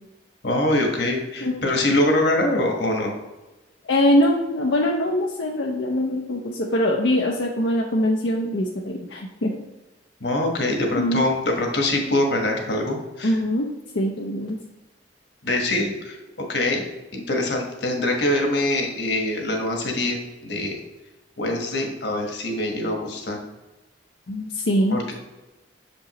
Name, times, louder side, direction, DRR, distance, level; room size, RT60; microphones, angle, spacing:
voice 1, 0.4-3.1 10.2-13.4 15.4-16.2 16.5-16.8 17.1-20.8 21.4-23.4 24.9-25.1, left 1 dB, 70° left, 2 dB, 1.3 m, -24 dB
voice 2, 3.9-9.6 11.0-11.3 13.2-13.7 13.9-14.6 24.3-25.0, left 1 dB, 90° left, -1 dB, 0.7 m, -22 dB
6.8 x 5.2 x 3.0 m, 1.1 s
head